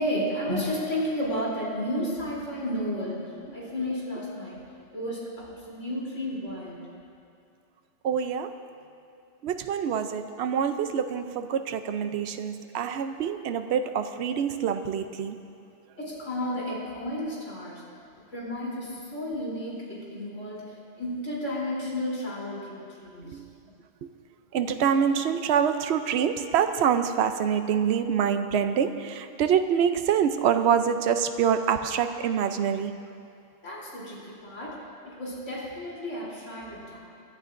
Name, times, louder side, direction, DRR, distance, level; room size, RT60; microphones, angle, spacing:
voice 1, 0.0-4.6 4.9-6.9 16.0-17.8 18.3-20.6 20.9-23.4 33.6-37.0, left 1 dB, 75° left, -6 dB, 3.8 m, -32 dB
voice 2, 8.0-8.6 9.4-15.4 23.2-23.4 24.5-32.9, right 8 dB, 65° right, 9 dB, 0.9 m, -25 dB
25.5 x 11.5 x 2.6 m, 2.5 s
omnidirectional pair, 1.3 m